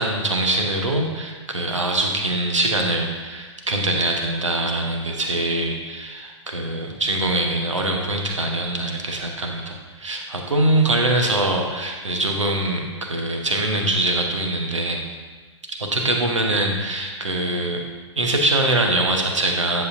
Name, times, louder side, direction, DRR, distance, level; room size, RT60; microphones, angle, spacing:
voice 1, 0.0-15.0 15.7-17.8 18.1-19.8, right 2 dB, 75° right, 2 dB, 1.3 m, -23 dB
10.0 x 7.5 x 2.7 m, 1.4 s
figure-of-eight pair, 110°, 16 cm